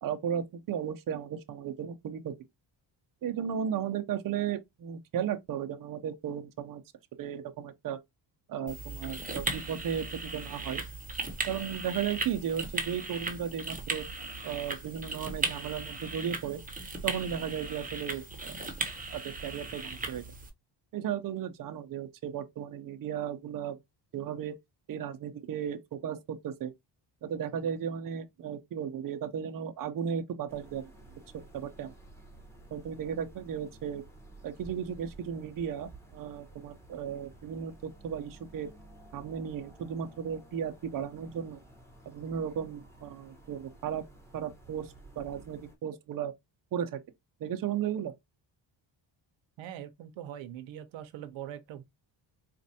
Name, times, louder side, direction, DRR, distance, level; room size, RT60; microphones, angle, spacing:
voice 1, 0.0-2.3 3.2-6.8 7.2-8.0 8.5-10.8 11.4-14.1 14.4-16.6 17.0-18.7 19.1-20.2 20.9-23.8 24.1-24.6 24.9-26.7 27.2-30.9 31.5-31.9 32.7-34.0 34.4-38.7 39.1-41.6 42.1-44.0 44.3-46.3 46.7-47.0 47.4-48.1, right 8 dB, 45° right, 0.6 m, -35 dB
sound 1, 8.7-20.5, right 3 dB, 20° right, 0.9 m, -37 dB
sound 2, 30.5-45.8, right 2 dB, 5° left, 1.1 m, -53 dB
voice 2, 49.6-51.8, right 11 dB, 85° right, 0.7 m, -42 dB
4.2 x 2.5 x 2.7 m
cardioid pair, 110°, 45 cm